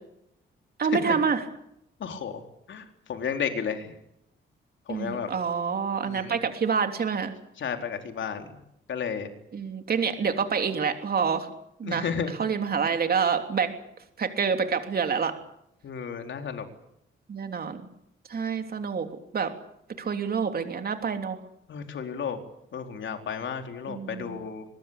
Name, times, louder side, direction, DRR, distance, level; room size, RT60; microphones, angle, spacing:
voice 1, 0.8-1.4 4.9-7.3 9.5-11.5 11.8-12.1 12.4-13.7 14.2-15.3 17.3-17.8 18.3-19.1 19.3-19.5 20.0-21.4 23.9-24.4, right 6 dB, 45° right, 6 dB, 3.2 m, -27 dB
voice 2, 2.0-2.4 2.7-3.9 4.9-5.3 6.0-6.3 7.6-8.6 8.9-9.3 11.8-12.4 15.8-16.7 21.7-22.4 22.7-24.7, left 7 dB, 65° left, 5 dB, 3.9 m, -33 dB
23.5 x 21.0 x 8.7 m, 0.76 s
cardioid pair, 115°, 21 cm